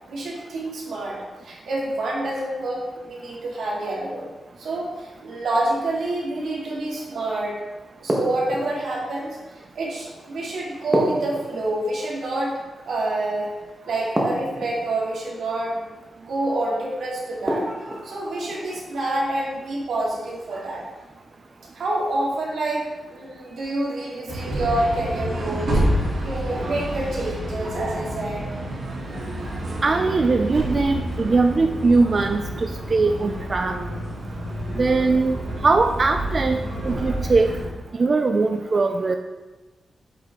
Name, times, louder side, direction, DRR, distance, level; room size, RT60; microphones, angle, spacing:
voice 1, 0.1-4.3 4.6-7.6 8.0-9.4 9.7-12.5 12.9-13.5 13.8-15.9 16.2-20.8 21.7-28.4, right 2 dB, 85° right, -5 dB, 2.3 m, -27 dB
sound 1, 8.1-8.9 10.9-12.0 14.1-14.9 17.5-18.1, equal, 15° right, 1.2 m, -25 dB
sound 2, 24.3-37.7, right 1 dB, 60° right, 2.1 m, -29 dB
voice 2, 29.8-33.7 34.8-36.6 36.8-37.5 37.9-39.2, right 3 dB, 40° right, 5 dB, 0.3 m, -20 dB
8.0 x 5.0 x 3.6 m, 1.2 s
wide cardioid pair, 115°, 0 cm